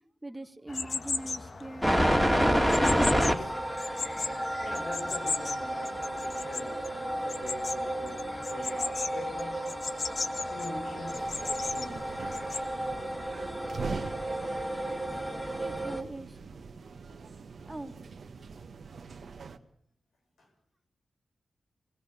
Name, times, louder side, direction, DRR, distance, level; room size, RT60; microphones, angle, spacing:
voice 1, 0.2-4.4 15.6-16.6 17.7-18.0, right 1 dB, 15° right, 1.7 m, -44 dB
sound 1, 0.7-12.6, left 4 dB, 55° left, 1.3 m, -38 dB
sound 2, 1.8-16.0, equal, 5° left, 2.7 m, -30 dB
voice 2, 4.6-9.9 10.5-12.3 20.4-20.5, left 2 dB, 90° left, 6.4 m, -44 dB
sound 3, 11.1-19.6, right 5 dB, 70° right, 1.5 m, -43 dB
24.0 x 20.0 x 6.9 m
cardioid pair, 60°, 0 cm